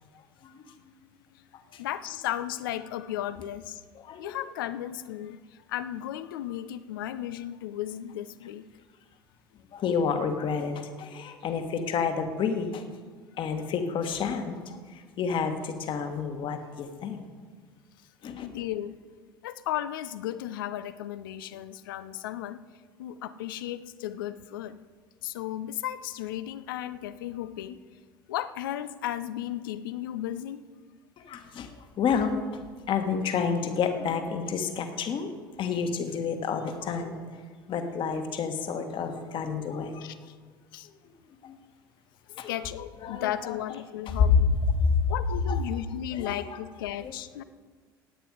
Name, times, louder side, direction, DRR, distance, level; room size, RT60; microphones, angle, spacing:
voice 1, 1.8-3.8 4.2-8.7 18.4-19.0 19.4-22.6 23.0-24.8 25.2-27.8 28.3-30.6 40.0-40.3 40.7-40.9 42.5-44.5 45.1-47.4, left 12 dB, 70° left, 14 dB, 0.6 m, -35 dB
voice 2, 3.9-4.3 9.7-12.8 13.4-17.3 18.2-18.5 31.2-32.4 32.9-35.3 35.6-37.2 37.7-40.1 41.4-41.6 42.3-42.5 43.0-43.6 44.8-45.0 45.3-45.6 46.1-46.6 47.0-47.1, left 6 dB, 45° left, 7 dB, 1.6 m, -30 dB
16.5 x 9.4 x 4.9 m, 1.5 s
figure-of-eight pair, 65°, 12 cm